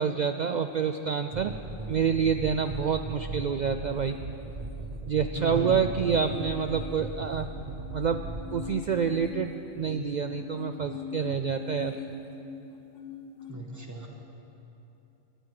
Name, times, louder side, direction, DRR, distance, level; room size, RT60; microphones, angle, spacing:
voice 1, 0.0-1.5 1.9-4.2 5.1-7.5 7.9-8.2 8.5-12.0, right 6 dB, 80° right, 7 dB, 0.4 m, -27 dB
sound 1, 1.3-8.7, right 3 dB, 35° right, 0.8 m, -38 dB
sound 2, 3.9-13.6, left 6 dB, 80° left, 1.1 m, -42 dB
voice 2, 5.3-5.8 13.5-14.1, right 2 dB, 15° right, 0 dB, 1.5 m, -35 dB
19.0 x 11.5 x 4.8 m, 2.9 s
omnidirectional pair, 1.3 m